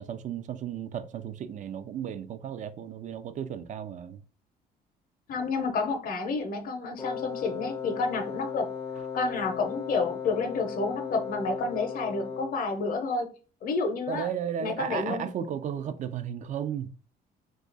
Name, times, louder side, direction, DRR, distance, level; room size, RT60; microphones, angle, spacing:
voice 1, 0.0-4.2 14.1-16.9, right 9 dB, 50° right, 0.4 m, -34 dB
voice 2, 5.3-8.7 9.1-13.3 13.6-14.3 14.6-15.3, left 4 dB, 55° left, 0.7 m, -30 dB
Wind instrument woodwind instrument, 7.0-12.7, left 7 dB, 25° left, 0.5 m, -36 dB
2.8 x 2.4 x 3.9 m
cardioid pair, 110°, 17 cm